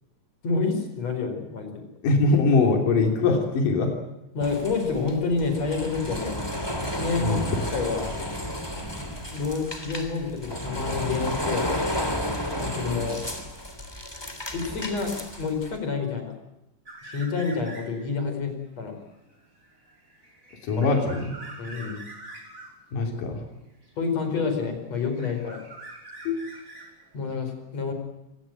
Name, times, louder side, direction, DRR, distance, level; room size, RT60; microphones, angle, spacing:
voice 1, 0.4-1.8 4.3-6.4 6.8-7.4 7.7-8.1 8.9-9.1 9.3-11.7 12.6-13.2 14.5-16.3 17.0-19.0 20.7-20.9 21.6-22.0 24.0-25.6 27.1-27.9, left 4 dB, 50° left, 6 dB, 6.0 m, -28 dB
voice 2, 2.0-3.9 7.2-7.6 20.6-21.3 22.9-23.3 26.3-26.4, left 3 dB, 80° left, 3 dB, 4.7 m, -22 dB
sound 1, 4.4-15.8, left 1 dB, 10° left, 3.0 m, -32 dB
sound 2, 16.9-18.1 18.6-22.8 23.8-24.6 24.9-27.3, right 2 dB, 25° right, 5.8 m, -45 dB
26.0 x 18.5 x 9.2 m, 0.92 s
omnidirectional pair, 3.7 m